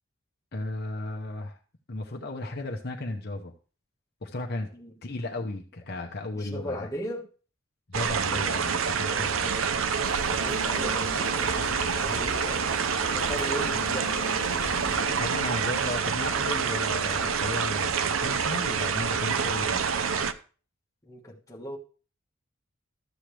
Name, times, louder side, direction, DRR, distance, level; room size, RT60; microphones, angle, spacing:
voice 1, 0.5-1.6 1.9-3.5 4.2-4.7 5.0-6.9 7.9-9.5 15.1-19.8, left 2 dB, 50° left, 0.9 m, -35 dB
voice 2, 6.3-7.3 9.1-9.7 10.3-12.7 13.1-14.1 21.0-21.8, equal, 15° left, 1.6 m, -38 dB
sound 1, 7.9-20.3, right 6 dB, 75° right, 0.6 m, -27 dB
sound 2, 10.0-15.0, equal, 25° right, 3.4 m, -42 dB
sound 3, 10.4-15.6, left 4 dB, 90° left, 0.8 m, -40 dB
13.0 x 7.7 x 3.3 m
head